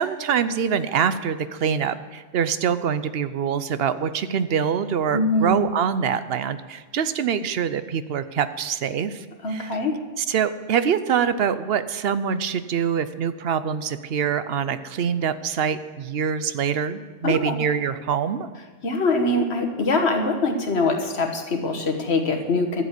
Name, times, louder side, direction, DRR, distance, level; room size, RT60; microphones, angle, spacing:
voice 1, 0.0-9.7 10.2-18.5, right 7 dB, 70° right, 13 dB, 0.9 m, -24 dB
voice 2, 5.1-5.5 9.4-10.0 17.2-17.6 18.8-22.8, left 2 dB, 85° left, 4 dB, 1.7 m, -23 dB
12.0 x 7.6 x 8.3 m, 1.4 s
omnidirectional pair, 1.1 m